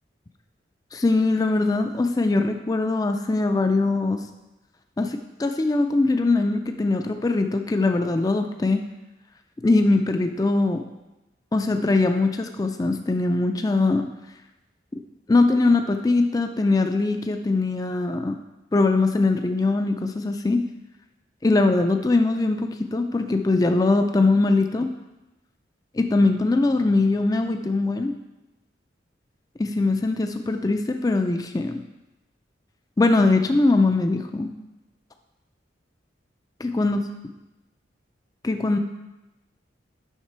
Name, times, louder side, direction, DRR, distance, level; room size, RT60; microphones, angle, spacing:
voice 1, 0.9-4.2 5.0-8.8 9.6-10.8 11.5-14.1 14.9-15.0 15.3-18.4 18.7-20.6 21.4-24.9 25.9-28.1 29.6-31.8 33.0-34.5 36.6-37.0 38.4-38.8, left 3 dB, 20° left, 6 dB, 0.3 m, -21 dB
7.2 x 5.8 x 4.6 m, 1.0 s
head